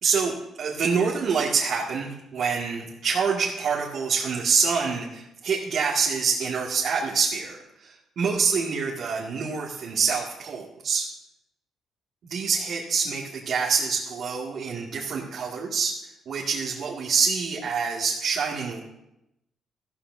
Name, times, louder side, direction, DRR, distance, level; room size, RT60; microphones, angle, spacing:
voice 1, 0.0-11.1 12.2-15.9 16.3-18.8, right 5 dB, 65° right, -5 dB, 2.2 m, -26 dB
15.5 x 14.0 x 2.8 m, 0.86 s
cardioid pair, 90°, 0 cm